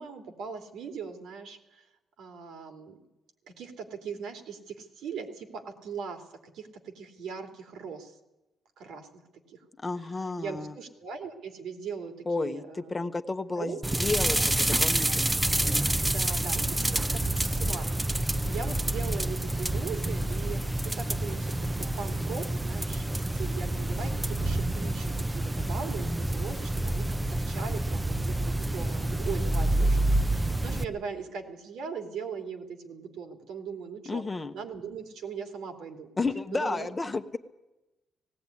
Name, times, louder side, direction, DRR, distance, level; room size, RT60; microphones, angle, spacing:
voice 1, 0.0-1.9 2.2-3.0 3.5-8.2 8.8-9.2 9.5-9.6 10.0-13.0 13.5-14.0 16.1-34.2 34.5-36.1 36.5-36.9, right 6 dB, 85° right, 5 dB, 2.8 m, -40 dB
voice 2, 9.8-10.8 12.3-15.3 34.1-34.5 36.2-37.4, left 3 dB, 20° left, 8 dB, 1.0 m, -32 dB
sound 1, 13.8-30.8, right 1 dB, 10° right, 0.6 m, -28 dB
18.0 x 17.0 x 9.7 m, 1.0 s
cardioid pair, 130°, 0 cm